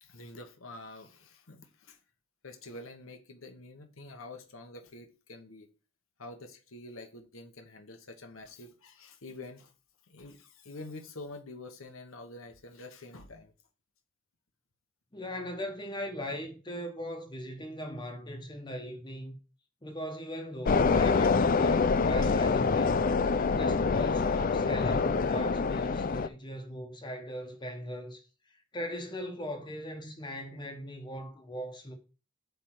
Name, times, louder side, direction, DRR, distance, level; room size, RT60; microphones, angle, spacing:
voice 1, 0.0-2.0 2.4-5.7 6.2-9.7 10.1-13.5, left 2 dB, 75° left, 1.2 m, -47 dB
voice 2, 15.1-19.4 19.8-23.1 23.5-28.3 28.7-31.9, equal, 20° left, 1.1 m, -39 dB
sound 1, 20.7-26.3, left 4 dB, 40° left, 0.4 m, -26 dB
8.2 x 3.5 x 6.0 m
head